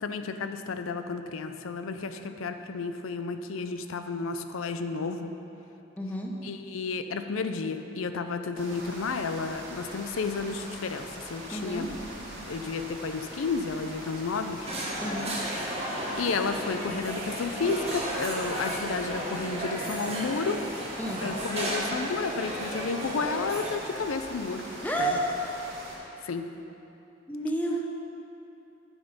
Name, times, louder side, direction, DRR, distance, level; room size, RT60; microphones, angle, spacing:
voice 1, 0.0-5.3 6.4-11.9 12.5-14.7 16.2-20.6 21.2-24.6 25.0-25.2 26.2-26.5, left 4 dB, 85° left, 8 dB, 0.5 m, -32 dB
voice 2, 6.0-6.3 11.5-11.9 15.0-15.3 21.0-21.3 24.8-25.3 27.3-27.9, right 1 dB, 10° left, 0 dB, 0.7 m, -30 dB
sound 1, 8.6-26.0, right 1 dB, 65° right, 1.7 m, -42 dB
sound 2, 14.7-23.7, right 1 dB, 30° right, 1.6 m, -34 dB
8.8 x 6.0 x 5.1 m, 2.9 s
head